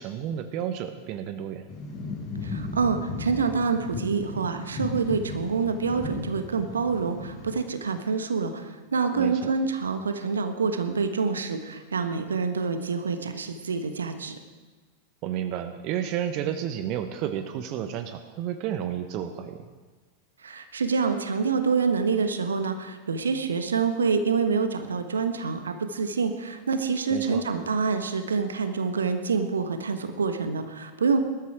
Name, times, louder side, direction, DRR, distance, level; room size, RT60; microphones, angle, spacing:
voice 1, 0.0-1.7 9.2-9.5 15.2-19.7 27.1-27.4, right 10 dB, 40° right, 9 dB, 1.0 m, -31 dB
sound 1, 1.7-7.6, left 3 dB, 30° left, 5.4 m, -36 dB
voice 2, 2.4-14.4 20.4-31.2, right 5 dB, 70° right, 8 dB, 1.3 m, -27 dB
19.0 x 13.0 x 4.8 m, 1.4 s
figure-of-eight pair, 90°, 0 cm